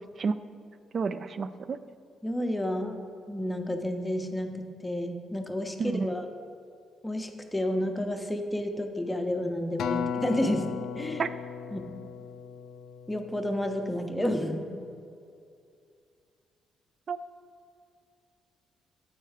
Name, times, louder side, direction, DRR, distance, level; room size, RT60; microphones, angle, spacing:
voice 1, 0.9-1.8 5.8-6.1 11.2-11.3 17.1-17.2, right 5 dB, 45° right, 13 dB, 0.3 m, -30 dB
voice 2, 2.2-3.0 3.3-6.3 7.0-11.2 11.7-11.9 13.1-14.6, left 1 dB, 10° left, 4 dB, 0.7 m, -30 dB
Acoustic guitar, 9.8-14.2 14.9-15.0, left 8 dB, 75° left, 0.3 m, -36 dB
8.0 x 4.5 x 4.7 m, 2.4 s
cardioid pair, 90°, 0 cm